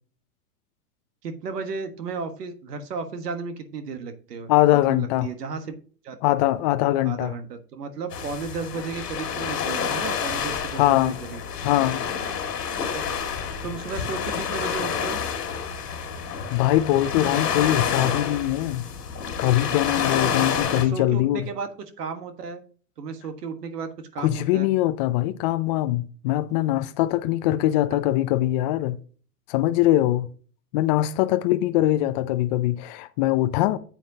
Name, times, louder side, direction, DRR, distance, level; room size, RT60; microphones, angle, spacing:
voice 1, 1.2-4.5 4.9-5.6 6.0-6.2 7.0-11.4 12.8-13.0 13.6-15.2 20.7-21.7 22.0-22.6 23.0-24.7, right 5 dB, 85° right, 1.4 m, -34 dB
voice 2, 4.5-5.3 6.2-7.3 10.7-11.2 11.6-12.0 16.5-18.9 19.4-21.5 24.2-29.0 29.5-30.3 30.7-33.8, left 14 dB, 30° left, 0.4 m, -22 dB
sound 1, 8.1-20.9, left 7 dB, 85° left, 2.1 m, -28 dB
8.8 x 7.5 x 2.8 m
hypercardioid pair, 120°, 46 cm